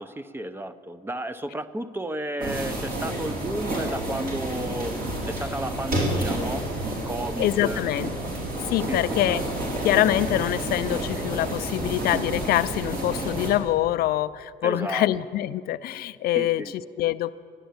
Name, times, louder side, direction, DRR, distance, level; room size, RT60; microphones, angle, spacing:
voice 1, 0.0-7.8 8.9-9.0 14.6-15.1 16.3-16.7, right 1 dB, 15° right, 12 dB, 0.5 m, -33 dB
sound 1, 2.4-13.5, right 1 dB, 60° right, 3.8 m, -30 dB
voice 2, 7.4-8.1 8.7-9.4 9.8-17.3, left 13 dB, 65° left, 15 dB, 0.4 m, -25 dB
11.5 x 10.0 x 8.0 m, 2.2 s
cardioid pair, 110°, 17 cm